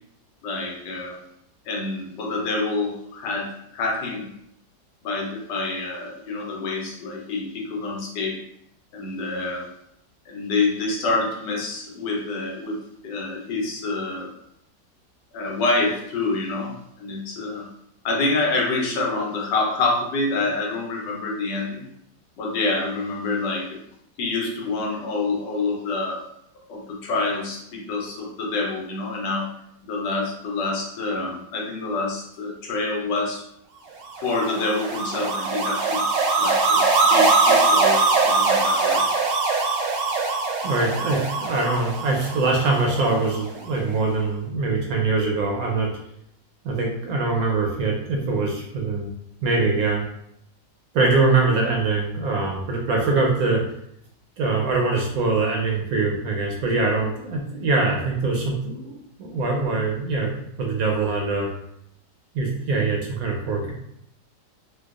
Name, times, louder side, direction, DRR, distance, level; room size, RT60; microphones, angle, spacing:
voice 1, 0.4-1.2 1.6-4.3 5.0-8.4 8.9-9.7 10.3-14.3 15.3-16.7 17.0-17.6 18.0-21.9 22.4-23.7 24.2-26.2 26.7-29.5 29.9-33.4 34.2-36.1 36.4-39.0, left 3 dB, 85° left, -1 dB, 1.4 m, -27 dB
sound 1, 34.1-43.4, right 3 dB, 85° right, 1.3 m, -22 dB
voice 2, 40.6-45.9 46.6-49.1 49.4-50.0 50.9-53.6 54.4-61.5 62.3-63.7, right 3 dB, 70° right, -1 dB, 0.9 m, -23 dB
4.4 x 2.2 x 2.4 m, 0.75 s
omnidirectional pair, 1.9 m